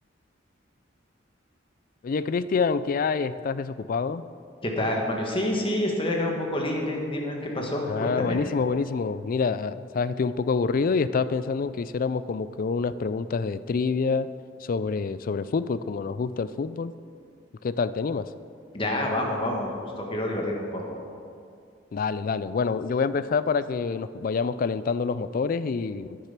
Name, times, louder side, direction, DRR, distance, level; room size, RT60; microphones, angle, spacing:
voice 1, 2.0-4.2 7.7-14.3 14.6-16.9 17.6-18.3 21.9-26.2, left 5 dB, 45° left, 15 dB, 0.4 m, -27 dB
voice 2, 4.6-8.4 18.7-20.8, left 1 dB, 30° left, 0 dB, 1.6 m, -28 dB
10.0 x 9.1 x 5.8 m, 2.3 s
head